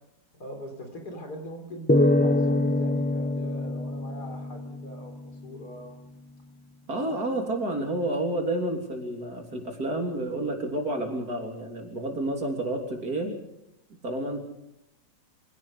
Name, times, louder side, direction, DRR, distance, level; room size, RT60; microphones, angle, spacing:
voice 1, 0.3-6.0 7.0-7.2, equal, 60° left, 4 dB, 4.4 m, -41 dB
sound 1, 1.9-5.3, left 1 dB, 15° left, 0.4 m, -25 dB
voice 2, 6.9-13.3 14.0-14.5, right 1 dB, 55° right, 2 dB, 3.9 m, -30 dB
25.0 x 17.0 x 6.7 m, 0.84 s
omnidirectional pair, 2.0 m